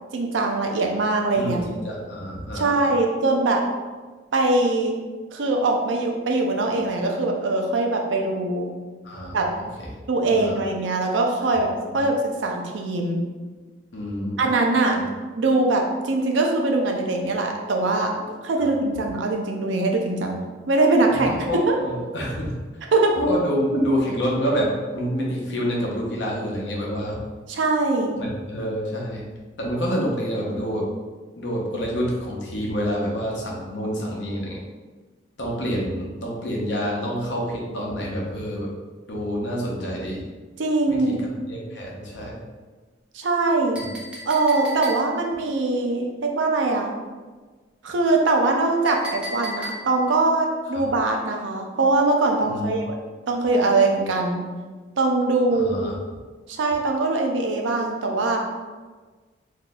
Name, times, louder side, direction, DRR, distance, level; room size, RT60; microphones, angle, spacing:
voice 1, 0.1-1.6 2.5-3.6 4.3-4.9 5.3-8.7 9.3-9.4 10.1-12.2 12.4-13.2 14.4-15.0 15.4-18.1 18.4-20.4 20.7-21.7 22.9-23.1 27.5-28.2 40.6-41.2 43.1-43.8 44.3-46.9 47.8-52.9 53.3-54.4 55.0-55.9 56.5-58.4, right 2 dB, 80° right, 2 dB, 0.5 m, -22 dB
voice 2, 1.4-2.9 9.0-9.7 10.2-10.6 11.9-12.0 13.9-14.4 14.9-15.0 21.0-22.6 23.1-27.2 28.2-29.2 29.6-30.9 31.4-34.6 35.4-38.7 39.1-40.2 40.9-41.2 41.5-42.4 43.7-43.9 52.4-52.7 55.5-55.9, equal, 70° left, -3 dB, 0.8 m, -27 dB
Chink clink, 43.7-45.3 48.9-50.1, equal, 5° right, 0.5 m, -36 dB
2.7 x 2.3 x 4.0 m, 1.4 s
head